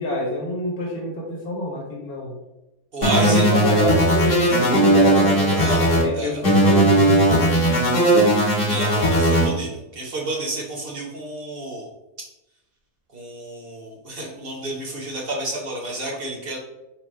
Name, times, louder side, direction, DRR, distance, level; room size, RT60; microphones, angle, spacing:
voice 1, 0.0-2.4 3.0-7.5, left 2 dB, 75° left, -2 dB, 1.7 m, -26 dB
voice 2, 2.9-3.5 5.6-6.4 8.5-11.9 13.1-16.6, right 1 dB, 45° right, -2 dB, 0.9 m, -30 dB
sound 1, 3.0-6.0 6.4-9.5, right 1 dB, 55° left, 1.6 m, -17 dB
4.5 x 2.2 x 4.6 m, 0.95 s
omnidirectional pair, 1.6 m